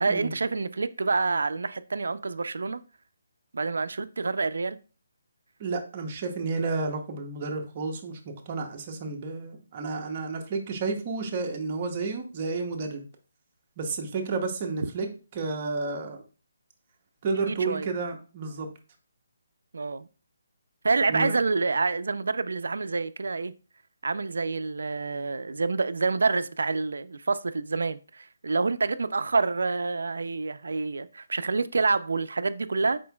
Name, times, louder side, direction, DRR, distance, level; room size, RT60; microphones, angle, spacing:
voice 1, 0.0-2.8 3.5-4.8 17.4-17.9 19.7-20.1 20.8-23.5 24.0-33.0, right 4 dB, 80° right, 0.3 m, -27 dB
voice 2, 5.6-8.2 8.5-13.0 13.8-15.1 15.3-16.2 17.2-18.7 21.1-21.3, right 4 dB, 25° right, 0.7 m, -31 dB
4.4 x 4.2 x 2.2 m
hypercardioid pair, 170°, 0 cm